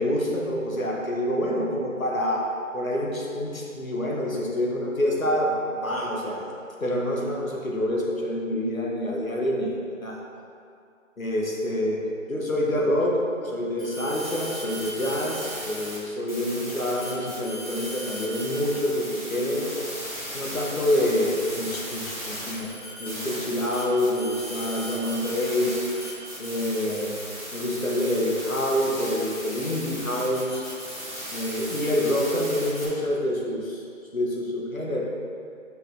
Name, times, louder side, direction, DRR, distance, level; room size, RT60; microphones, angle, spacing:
voice 1, 0.0-2.4 2.7-6.5 6.8-10.2 11.2-12.0 12.3-19.8 20.3-22.7 23.0-25.8 26.4-27.2 27.5-30.6 31.3-33.8 34.1-35.0, left 1 dB, 80° left, -2 dB, 1.4 m, -27 dB
sound 1, 13.8-16.0 16.3-32.8, equal, 25° right, 1.2 m, -36 dB
5.6 x 5.4 x 3.9 m, 2.4 s
figure-of-eight pair, 175°, 41 cm